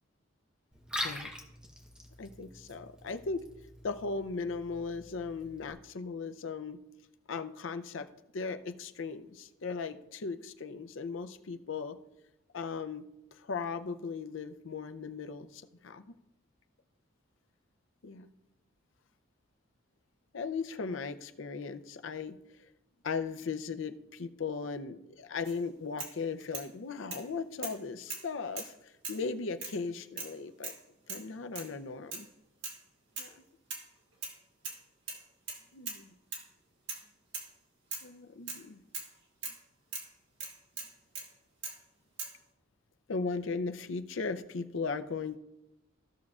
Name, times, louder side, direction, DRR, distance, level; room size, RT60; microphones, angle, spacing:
Liquid, 0.7-5.7, left 1 dB, 5° right, 1.0 m, -43 dB
voice 1, 2.2-3.5 3.8-6.8 7.3-8.1 8.3-12.0 12.5-16.1 18.0-18.3 20.3-22.4 23.0-30.7 31.1-32.3 33.2-33.3 35.7-36.1 38.0-38.8 43.1-45.4, left 4 dB, 70° left, 9 dB, 0.6 m, -37 dB
sound 1, 25.4-25.6 26.0-26.7 27.1-27.3 27.6-27.8 28.1-28.7 29.0-29.3 29.6-29.8 30.2-30.4 30.6-30.8 31.1-31.3 31.6-31.7 32.1-32.3 32.6-32.8 33.2-33.4 33.7-34.4 34.6-34.8 35.1-36.0 36.3-36.5 36.9-37.1 37.3-37.5 37.9-38.1 38.5-38.6 38.9-39.1 39.4-39.6 39.9-40.1 40.4-41.3 41.6-41.8 42.2-42.4, right 4 dB, 60° right, 1.9 m, -41 dB
15.5 x 6.2 x 2.4 m, 0.90 s
head